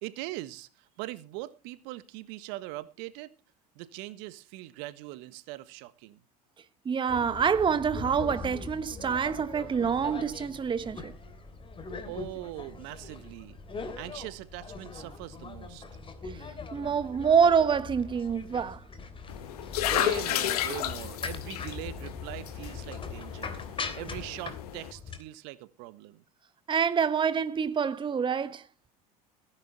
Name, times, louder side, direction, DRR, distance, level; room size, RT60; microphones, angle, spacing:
voice 1, 0.0-3.3 3.7-6.2 12.0-13.6 14.0-15.8 19.8-26.2, right 18 dB, 65° right, 1.4 m, -41 dB
voice 2, 6.8-11.1 16.2-16.4 16.7-18.8 26.7-28.6, right 7 dB, 25° right, 1.2 m, -26 dB
sound 1, 7.1-25.2, left 4 dB, 25° left, 3.2 m, -41 dB
sound 2, 19.3-24.9, left 12 dB, 75° left, 1.6 m, -33 dB
17.5 x 10.5 x 4.3 m
hypercardioid pair, 85°, 20 cm